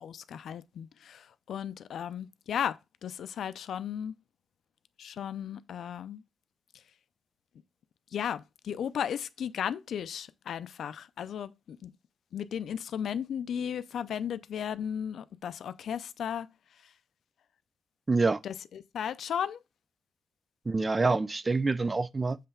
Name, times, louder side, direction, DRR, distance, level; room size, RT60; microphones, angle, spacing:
voice 1, 0.0-4.1 5.0-6.2 8.1-11.9 12.3-16.5 18.4-19.6, left 8 dB, 80° left, 0.5 m, -35 dB
voice 2, 18.1-18.4 20.7-22.4, right 3 dB, 20° right, 0.4 m, -26 dB
7.5 x 3.3 x 5.6 m
wide cardioid pair, 150°, 0 cm